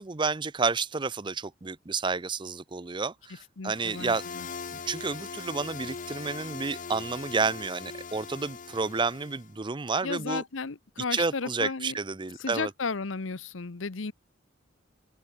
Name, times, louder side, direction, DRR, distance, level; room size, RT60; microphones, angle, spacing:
voice 1, 0.0-4.2 4.7-10.4 11.1-12.7, right 4 dB, 25° right, 0.6 m, -30 dB
voice 2, 3.6-4.5 10.0-12.0 12.4-14.1, left 4 dB, 80° left, 0.9 m, -34 dB
sound 1, 3.7-9.5, left 5 dB, 40° left, 0.7 m, -41 dB
open air
head